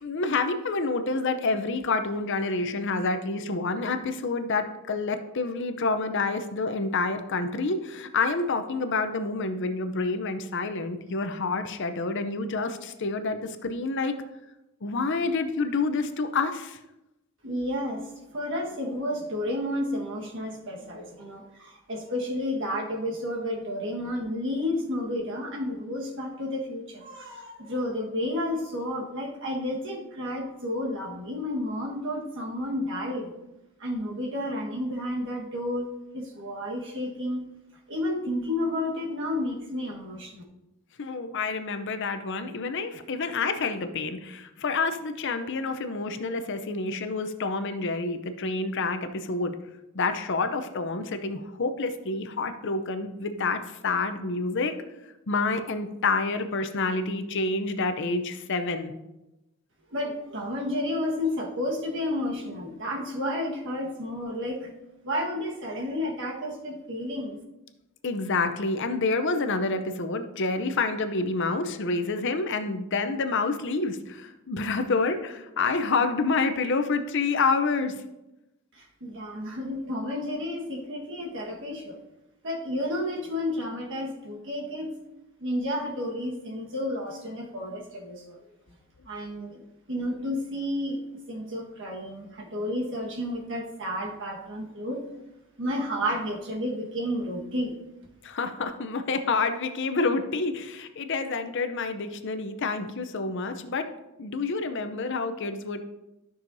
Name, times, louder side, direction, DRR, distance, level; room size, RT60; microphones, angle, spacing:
voice 1, 0.0-14.1 14.8-16.8 41.0-49.6 49.9-54.7 55.3-58.9 68.0-78.0 98.2-103.8 104.2-105.8, left 3 dB, 55° left, 8 dB, 0.6 m, -28 dB
voice 2, 17.4-18.1 18.3-33.3 33.8-37.4 37.9-40.4 59.9-64.7 65.0-67.4 78.7-82.0 82.4-84.9 85.4-88.4 89.1-89.6 89.9-91.0 91.3-95.0 95.6-97.7, left 1 dB, 55° right, 0 dB, 1.5 m, -31 dB
12.5 x 6.3 x 2.7 m, 0.95 s
head